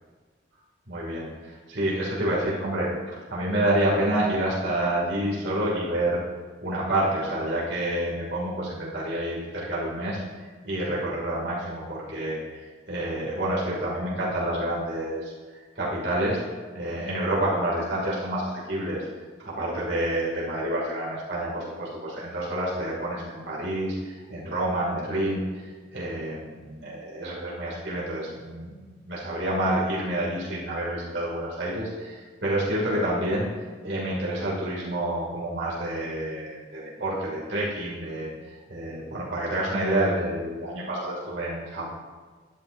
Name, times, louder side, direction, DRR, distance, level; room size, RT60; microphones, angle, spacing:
voice 1, 0.9-6.2 6.6-10.2 10.6-15.3 15.8-16.4 16.7-19.0 19.4-25.4 25.9-28.8 29.0-33.5 33.8-38.3 38.7-41.9, right 1 dB, 60° right, -6 dB, 2.5 m, -28 dB
12.5 x 9.6 x 2.7 m, 1.4 s
head